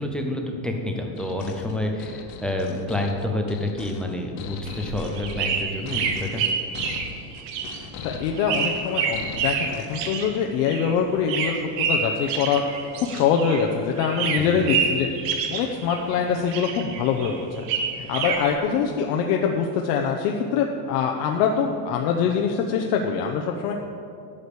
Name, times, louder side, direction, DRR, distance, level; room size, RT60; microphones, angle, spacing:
voice 1, 0.0-6.4 14.4-14.7, left 1 dB, ahead, 1 dB, 0.4 m, -28 dB
sound 1, 1.2-10.1, left 6 dB, 55° left, 1.1 m, -39 dB
sound 2, 4.7-13.7 14.0-16.2 16.5-18.5, right 6 dB, 90° right, 1.6 m, -28 dB
voice 2, 8.0-15.1 15.5-17.6 18.0-23.7, left 6 dB, 80° left, 1 dB, 1.0 m, -24 dB
13.0 x 5.0 x 8.5 m, 2.4 s
cardioid pair, 170°, 48 cm